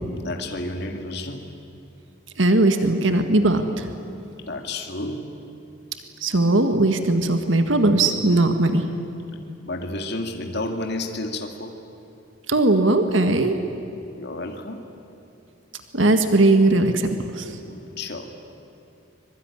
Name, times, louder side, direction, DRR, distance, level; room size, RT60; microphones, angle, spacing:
voice 1, 0.1-1.5 4.5-5.3 9.7-11.8 14.1-14.8 17.6-18.3, left 2 dB, 60° left, 4 dB, 2.1 m, -31 dB
voice 2, 2.4-3.9 6.2-8.8 12.5-13.6 15.9-17.1 17.3-17.6, right 2 dB, 75° right, 7 dB, 1.7 m, -19 dB
24.5 x 23.0 x 10.0 m, 2.8 s
head